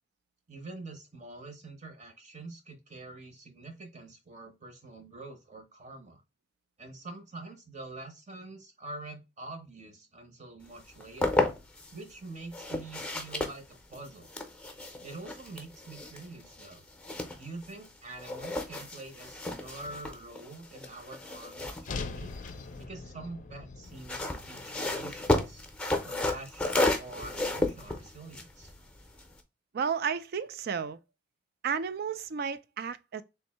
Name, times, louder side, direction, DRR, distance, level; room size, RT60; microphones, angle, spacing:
voice 1, 0.5-6.2 6.8-11.4 11.9-14.3 15.0-16.8 17.3-22.3 22.8-25.6 26.0-28.7, right 2 dB, 40° right, 0.9 m, -45 dB
sound 1, 10.8-11.9 12.5-17.9 18.2-22.8 23.8-29.4, left 2 dB, 5° left, 0.7 m, -33 dB
sound 2, 21.8-26.1, left 4 dB, 45° left, 0.5 m, -42 dB
voice 2, 29.7-31.0 31.6-33.2, right 6 dB, 55° right, 0.4 m, -32 dB
3.4 x 2.7 x 4.1 m
head